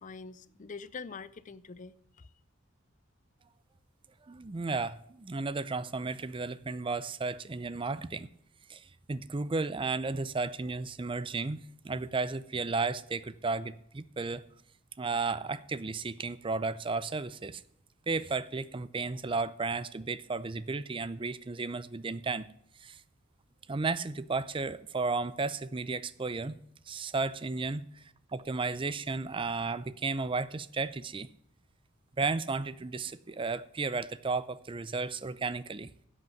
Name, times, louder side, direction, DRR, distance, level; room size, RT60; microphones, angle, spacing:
voice 1, 0.0-2.3, left 4 dB, 35° left, 0.5 m, -45 dB
voice 2, 4.2-8.3 8.7-11.6 11.8-14.4 15.0-17.6 18.1-22.5 22.8-23.0 23.7-26.6 26.9-28.0 28.3-31.3 32.2-35.9, right 4 dB, 25° right, 0.5 m, -33 dB
11.0 x 8.2 x 5.8 m
head